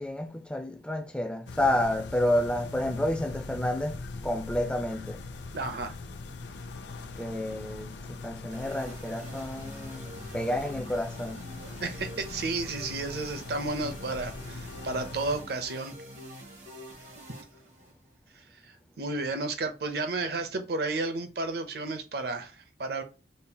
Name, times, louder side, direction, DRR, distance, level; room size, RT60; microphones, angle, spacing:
voice 1, 0.0-4.0 4.2-5.3 7.2-11.4, left 1 dB, 5° left, 0.5 m, -30 dB
sound 1, 1.5-15.4, left 3 dB, 80° left, 0.5 m, -41 dB
voice 2, 5.5-5.9 11.8-15.9 18.3-23.0, right 3 dB, 60° right, 0.6 m, -32 dB
sound 2, 8.5-18.2, right 1 dB, 45° right, 1.3 m, -46 dB
5.3 x 2.8 x 2.3 m
head